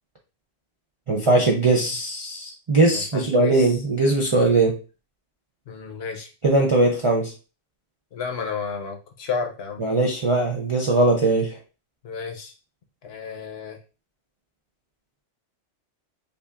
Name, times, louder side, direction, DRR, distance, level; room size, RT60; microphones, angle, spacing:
voice 1, 1.1-4.8 6.4-7.3 9.8-11.6, right 2 dB, 45° right, -2 dB, 0.4 m, -20 dB
voice 2, 2.9-3.8 5.7-6.3 8.1-9.8 12.0-12.5 13.0-13.8, left 5 dB, 60° left, 4 dB, 0.9 m, -32 dB
5.2 x 2.4 x 2.4 m, 0.32 s
omnidirectional pair, 1.3 m